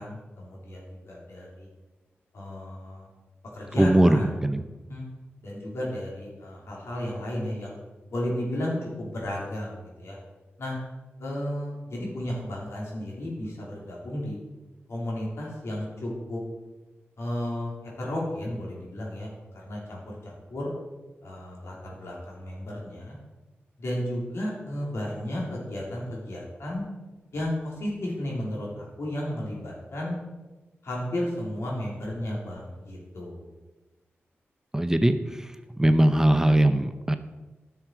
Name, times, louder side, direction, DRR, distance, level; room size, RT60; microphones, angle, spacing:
voice 1, 0.0-1.7 2.3-3.1 3.5-4.3 4.9-5.0 5.4-7.8 8.1-10.2 10.6-10.8 11.2-14.4 14.9-16.4 17.2-17.7 18.0-20.7 21.2-23.2 23.8-26.8 27.3-30.1 30.8-33.4, left 1 dB, 75° left, -3 dB, 3.2 m, -33 dB
voice 2, 3.8-4.6 34.7-35.5 35.8-37.2, right 1 dB, 10° right, 9 dB, 0.6 m, -21 dB
11.5 x 6.2 x 4.6 m, 1.1 s
cardioid pair, 70°, 5 cm